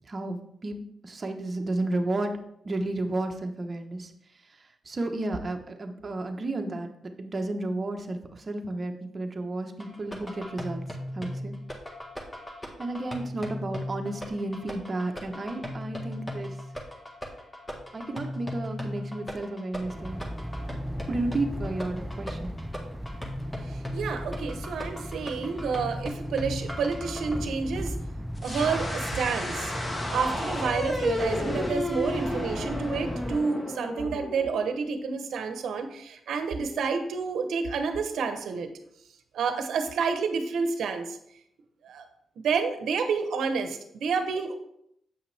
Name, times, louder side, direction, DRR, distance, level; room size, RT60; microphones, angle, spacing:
voice 1, 0.1-0.8 1.0-2.3 2.6-4.1 4.8-10.8 11.1-11.6 12.8-16.5 17.9-20.2 21.1-22.5, right 2 dB, 40° right, 4 dB, 1.1 m, -32 dB
sound 1, 9.8-27.4, left 1 dB, 15° left, 1.6 m, -37 dB
sound 2, 19.8-33.4, equal, 5° right, 0.5 m, -37 dB
voice 2, 23.7-27.9 28.4-29.7 30.1-38.7 39.3-41.2 41.8-42.0 42.4-44.5, right 5 dB, 80° right, 7 dB, 0.9 m, -29 dB
sound 3, 28.4-35.2, left 1 dB, 30° left, 1.4 m, -32 dB
8.1 x 5.7 x 3.4 m, 0.74 s
cardioid pair, 80°, 0 cm